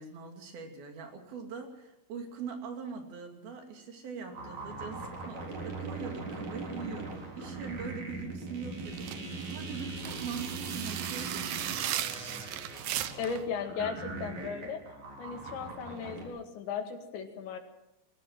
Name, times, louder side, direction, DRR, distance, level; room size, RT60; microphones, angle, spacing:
voice 1, 0.0-9.1 9.5-11.8, right 5 dB, 60° right, 4 dB, 4.2 m, -42 dB
sound 1, 4.3-16.3, right 3 dB, 40° right, 4.8 m, -40 dB
sound 2, 8.9-13.4, right 12 dB, 80° right, 2.0 m, -36 dB
voice 2, 13.2-14.8 15.2-17.6, left 6 dB, 75° left, 5 dB, 4.3 m, -36 dB
21.5 x 17.5 x 7.6 m, 0.88 s
omnidirectional pair, 5.3 m